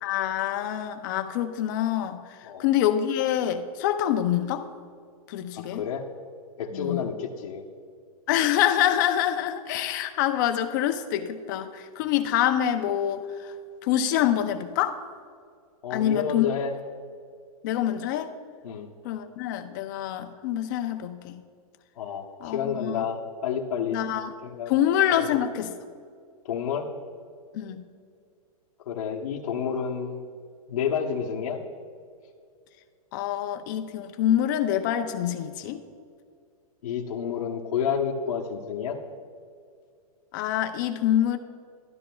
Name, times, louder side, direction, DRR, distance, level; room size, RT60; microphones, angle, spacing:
voice 1, 0.0-2.2 2.6-4.7 5.3-5.8 6.7-7.0 8.3-13.5 13.8-15.0 15.9-16.5 17.6-18.3 19.0-21.3 22.4-23.1 23.9-24.3 24.7-25.7 27.5-27.8 33.1-35.8 40.3-41.4, left 11 dB, 30° left, 7 dB, 0.5 m, -26 dB
voice 2, 5.6-6.1 6.6-7.6 15.8-16.7 18.6-18.9 22.0-24.1 24.4-24.7 25.2-25.4 26.4-26.9 28.8-30.2 30.7-31.6 36.8-39.0, left 7 dB, 75° left, -3 dB, 1.0 m, -30 dB
12.5 x 12.0 x 2.3 m, 2.2 s
supercardioid pair, 165°, 19 cm